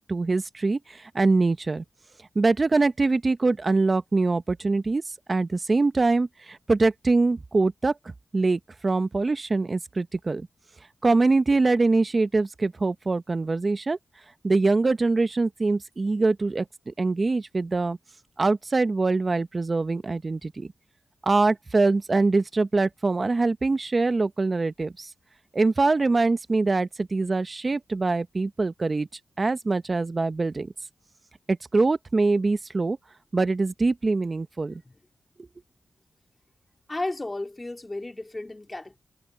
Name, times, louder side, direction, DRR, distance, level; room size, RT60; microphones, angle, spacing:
voice 1, 0.1-1.8 2.3-5.0 5.3-7.9 8.3-10.5 11.0-14.0 14.4-18.0 18.4-20.7 21.2-25.1 25.5-29.1 29.4-30.7 31.5-33.0 33.3-34.8, right 3 dB, 45° right, 1.0 m, -23 dB
voice 2, 36.9-39.0, left 2 dB, 30° left, 2.3 m, -33 dB
cardioid pair, 45°, 0 cm